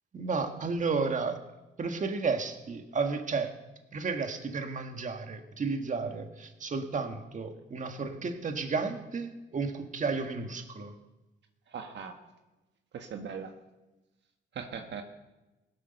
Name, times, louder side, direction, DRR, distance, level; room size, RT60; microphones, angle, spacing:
voice 1, 0.1-1.4 1.8-3.5 3.9-11.0, right 4 dB, 40° right, 6 dB, 1.8 m, -32 dB
voice 2, 11.7-12.1 12.9-13.5 14.5-15.0, right 6 dB, 65° right, 5 dB, 1.6 m, -39 dB
17.0 x 11.5 x 6.7 m, 1.0 s
cardioid pair, 90°, 20 cm